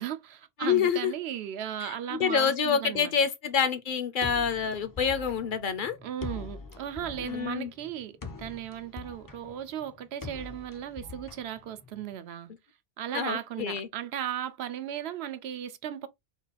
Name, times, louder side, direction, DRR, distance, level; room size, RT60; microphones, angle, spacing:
voice 1, 0.0-3.1 6.0-12.5 13.0-16.1, right 10 dB, 85° right, 0.9 m, -36 dB
voice 2, 0.6-1.1 1.8-6.0 7.2-7.7 13.1-13.9, left 7 dB, 60° left, 0.8 m, -27 dB
sound 1, 4.2-12.1, left 4 dB, 30° left, 0.4 m, -43 dB
3.7 x 2.3 x 3.9 m
omnidirectional pair, 1.0 m